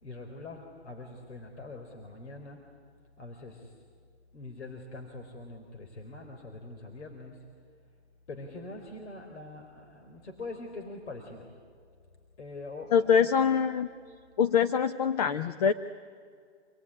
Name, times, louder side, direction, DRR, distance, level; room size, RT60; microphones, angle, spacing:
voice 1, 0.0-2.6 3.2-3.7 4.3-7.4 8.3-11.5 12.4-13.3, left 2 dB, 80° left, 2 dB, 4.2 m, -43 dB
voice 2, 12.9-13.9 14.4-15.7, left 7 dB, 35° left, 11 dB, 0.7 m, -24 dB
27.5 x 19.5 x 9.9 m, 2.2 s
hypercardioid pair, 160°, 34 cm